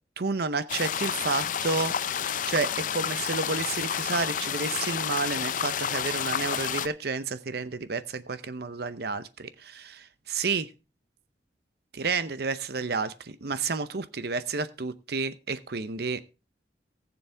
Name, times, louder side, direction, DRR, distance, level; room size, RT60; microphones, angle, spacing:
voice 1, 0.2-2.0 2.5-10.7 11.9-16.2, right 4 dB, 60° right, 13 dB, 0.7 m, -30 dB
sound 1, 0.7-6.9, left 8 dB, 45° left, 0.5 m, -30 dB
19.0 x 7.0 x 3.4 m, 0.31 s
head